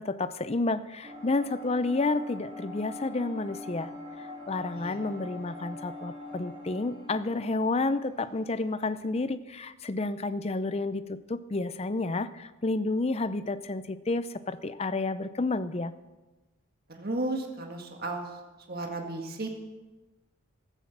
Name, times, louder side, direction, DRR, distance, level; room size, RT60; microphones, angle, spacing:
voice 1, 0.0-3.9 4.5-15.9, left 3 dB, 30° left, 14 dB, 0.5 m, -30 dB
sound 1, 1.0-9.0, left 1 dB, 25° right, 3.5 m, -43 dB
voice 2, 16.9-18.3 18.7-19.5, right 2 dB, 45° right, 2 dB, 1.8 m, -34 dB
14.5 x 12.5 x 6.0 m, 1.2 s
head